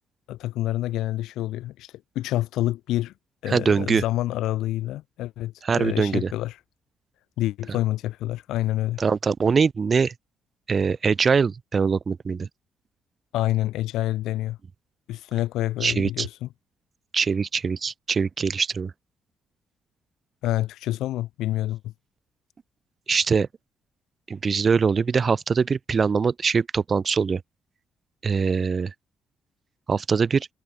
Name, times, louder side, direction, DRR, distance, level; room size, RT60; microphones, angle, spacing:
voice 1, 0.3-3.1 3.4-6.6 7.4-9.0 13.3-14.6 15.1-16.5 20.4-21.9, left 15 dB, 90° left, 2.5 m, -27 dB
voice 2, 3.5-4.0 5.6-6.3 9.0-10.1 10.7-12.5 15.8-16.3 17.1-18.9 23.1-23.5 24.3-27.4 28.2-28.9 29.9-30.5, right 5 dB, 40° right, 2.0 m, -22 dB
cardioid pair, 90°, 0 cm